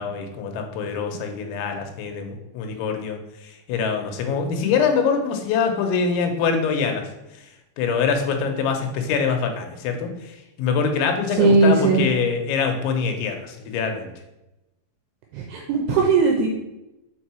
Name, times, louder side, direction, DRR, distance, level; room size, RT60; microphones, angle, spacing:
voice 1, 0.0-7.1 7.8-14.1, left 5 dB, 85° left, 4 dB, 3.2 m, -24 dB
voice 2, 11.3-12.0 15.3-16.5, right 4 dB, 80° right, 2 dB, 2.4 m, -18 dB
6.5 x 4.7 x 4.3 m, 0.94 s
omnidirectional pair, 5.3 m